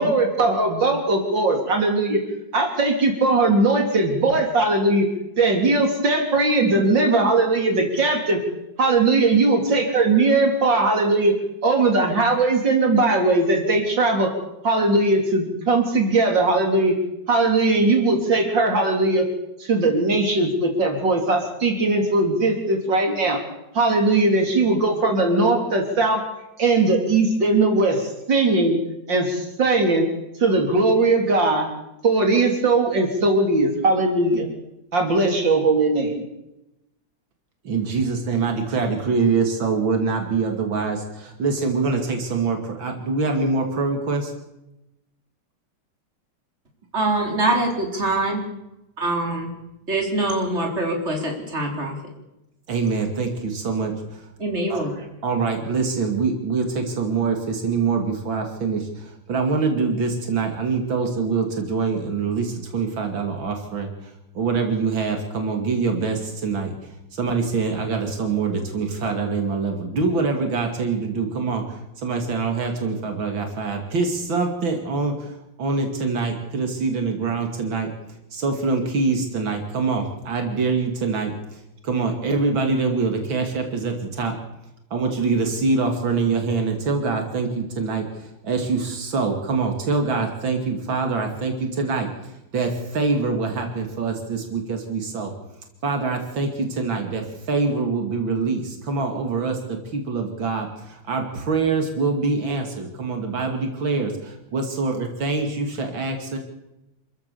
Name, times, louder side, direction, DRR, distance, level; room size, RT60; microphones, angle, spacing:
voice 1, 0.0-2.2 2.5-5.1 5.4-8.4 8.8-11.4 11.6-14.3 14.6-17.0 17.3-19.3 19.6-23.4 23.7-26.2 26.6-28.8 29.1-30.1 30.4-31.7 32.0-34.5 34.9-36.3, right 2 dB, 70° right, 3 dB, 4.1 m, -19 dB
voice 2, 37.6-44.3 52.7-54.2 54.7-54.9 55.2-66.8 67.1-77.9 78.3-81.6 81.8-84.3 84.9-95.3 95.8-106.4, right 4 dB, 90° right, 4 dB, 3.3 m, -24 dB
voice 3, 46.9-48.4 49.0-49.5 49.9-52.0 54.4-54.9, right 2 dB, 35° right, 1 dB, 4.8 m, -24 dB
28.0 x 14.5 x 7.0 m, 0.91 s
omnidirectional pair, 2.1 m